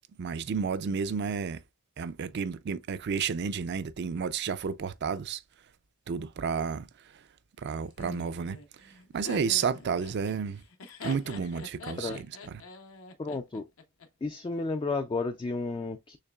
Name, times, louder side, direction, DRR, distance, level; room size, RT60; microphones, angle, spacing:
voice 1, 0.2-1.6 2.0-5.4 6.1-6.9 7.6-8.6 9.1-10.6 11.0-12.1, right 6 dB, 55° right, 0.4 m, -31 dB
Laughter, 8.0-14.1, left 3 dB, 75° left, 0.9 m, -44 dB
voice 2, 13.2-13.7 14.2-16.2, left 3 dB, 25° left, 0.3 m, -32 dB
6.5 x 3.2 x 2.3 m
head